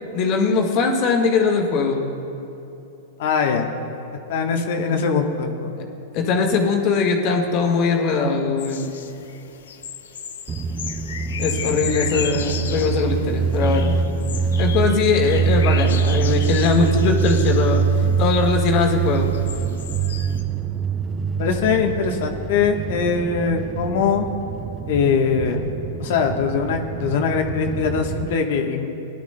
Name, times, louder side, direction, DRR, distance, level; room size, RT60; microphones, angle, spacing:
voice 1, 0.1-2.0 6.1-9.0 11.4-13.9 14.6-17.8 18.2-19.3, left 4 dB, 45° left, 2 dB, 1.6 m, -20 dB
voice 2, 3.2-3.7 4.3-5.8 21.4-24.2 24.9-25.6 26.0-28.9, left 6 dB, 65° left, 3 dB, 1.1 m, -22 dB
sound 1, 8.6-20.4, left 7 dB, 80° left, 0.7 m, -35 dB
sound 2, 10.5-28.3, right 6 dB, 25° right, 0.4 m, -24 dB
20.0 x 11.5 x 2.2 m, 2.9 s
hypercardioid pair, 120°, 0 cm